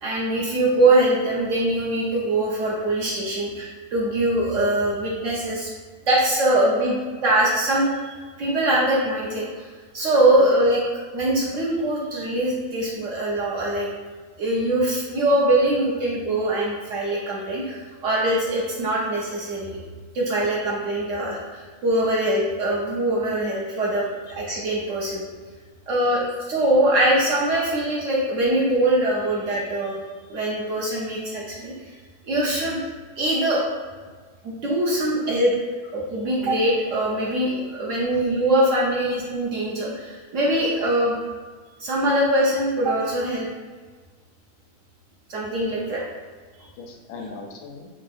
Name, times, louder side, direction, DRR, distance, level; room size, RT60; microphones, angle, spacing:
voice 1, 0.0-5.7 6.0-9.7 9.9-10.8 11.1-13.9 14.4-19.8 20.1-25.2 25.9-26.2 26.5-29.9 30.3-31.9 32.2-32.8 33.2-33.6 34.4-35.5 35.9-41.2 41.8-43.5 45.3-46.0 46.6-46.7, right 1 dB, 60° right, -5 dB, 0.8 m, -22 dB
voice 2, 46.8-47.9, left 4 dB, 85° left, 1 dB, 1.2 m, -42 dB
3.5 x 2.8 x 2.4 m, 1.5 s
omnidirectional pair, 1.7 m